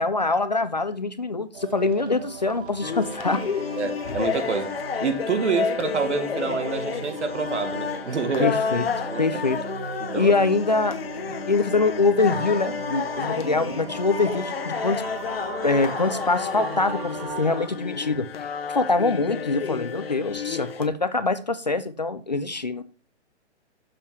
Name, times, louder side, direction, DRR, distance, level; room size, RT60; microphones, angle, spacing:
voice 1, 0.0-3.6 8.4-8.8 9.2-9.6 10.2-11.0 11.3-15.0 15.6-18.3 18.7-22.8, left 3 dB, 40° left, 0.4 m, -24 dB
sound 1, 1.5-17.3, right 6 dB, 45° right, 1.2 m, -39 dB
sound 2, 2.8-20.9, left 7 dB, 55° left, 0.9 m, -31 dB
voice 2, 3.8-4.7 5.0-8.6 9.1-9.3 10.0-10.3, right 5 dB, 75° right, 1.7 m, -27 dB
sound 3, 4.8-17.8, right 4 dB, 30° right, 1.2 m, -42 dB
6.9 x 5.3 x 4.8 m
hypercardioid pair, 175°, 35 cm